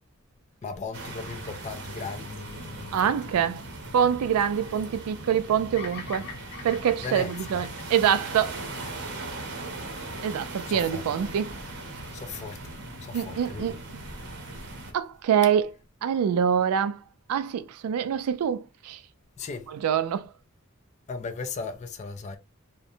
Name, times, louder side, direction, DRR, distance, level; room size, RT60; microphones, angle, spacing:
voice 1, 0.6-2.9 3.3-3.5 7.0-7.6 10.6-11.0 12.1-12.6 13.0-13.8 19.4-19.7 21.1-22.4, left 4 dB, 30° left, 0.3 m, -37 dB
sound 1, 0.9-14.9, right 2 dB, 55° right, 0.7 m, -39 dB
voice 2, 2.9-3.6 3.9-6.3 6.6-8.6 10.2-11.6 13.1-13.8 14.9-15.7 16.0-17.0 17.3-19.0 19.7-20.3, right 8 dB, 85° right, 0.3 m, -25 dB
Bird vocalization bird call bird song, 5.7-10.0, left 5 dB, 50° left, 0.7 m, -44 dB
2.7 x 2.1 x 2.5 m
head